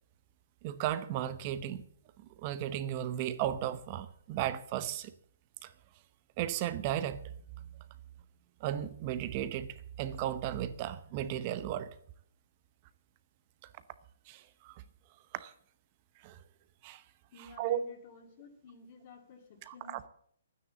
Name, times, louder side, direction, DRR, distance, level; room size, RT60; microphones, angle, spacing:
voice 1, 0.6-1.8 2.4-5.1 5.6-5.7 6.4-7.2 7.6-7.7 8.6-11.9 14.3-14.8 15.3-15.5 16.2-16.4 16.8-17.0 17.6-17.8 19.7-20.1, right 11 dB, 30° right, 14 dB, 0.8 m, -35 dB
voice 2, 17.3-20.1, left 4 dB, 35° left, 4 dB, 2.3 m, -53 dB
12.0 x 9.7 x 7.5 m, 0.63 s
hypercardioid pair, 165°, 0 cm